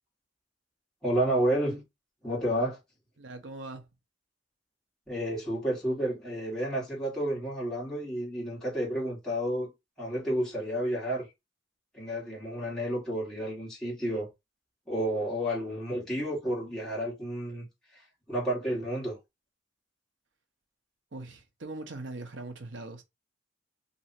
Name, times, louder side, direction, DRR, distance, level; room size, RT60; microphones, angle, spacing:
voice 1, 1.0-1.8 2.2-2.8 5.1-9.7 10.0-11.3 11.9-14.3 14.9-17.7 18.3-19.2, right 1 dB, 5° left, 1.7 m, -30 dB
voice 2, 3.2-3.8 21.1-23.0, right 2 dB, 75° right, 0.8 m, -41 dB
3.0 x 2.7 x 4.2 m
head